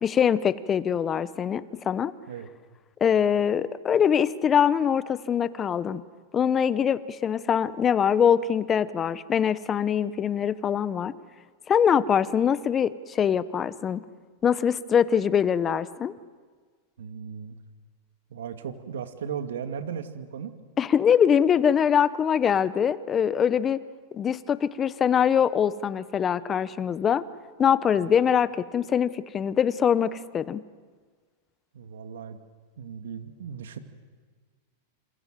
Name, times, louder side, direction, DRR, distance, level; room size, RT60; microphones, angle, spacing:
voice 1, 0.0-2.1 3.0-6.0 6.3-11.1 11.7-14.0 14.4-16.1 20.8-23.8 24.1-27.2 27.6-30.6, left 8 dB, 25° left, 15 dB, 1.1 m, -23 dB
voice 2, 17.0-17.6 18.3-20.5 28.0-28.1 31.7-32.4 32.8-33.8, right 7 dB, 80° right, 7 dB, 2.2 m, -36 dB
28.0 x 27.0 x 7.7 m, 1.5 s
hypercardioid pair, 120°, 0 cm